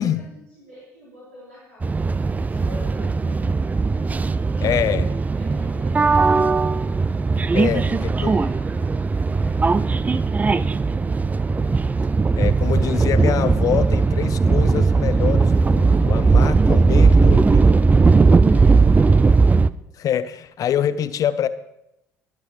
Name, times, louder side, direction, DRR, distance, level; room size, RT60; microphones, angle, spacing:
voice 1, 0.0-3.8 4.5-6.6 7.5-8.9 9.2-11.2 18.5-19.8, equal, 80° right, -9 dB, 3.8 m, -46 dB
sound 1, 1.8-19.7, right 4 dB, 20° right, 0.4 m, -18 dB
voice 2, 4.6-5.1 7.5-8.4 12.4-17.7 20.0-21.5, left 9 dB, 45° left, 14 dB, 0.8 m, -25 dB
22.5 x 9.8 x 3.2 m, 0.85 s
figure-of-eight pair, 50°, 8 cm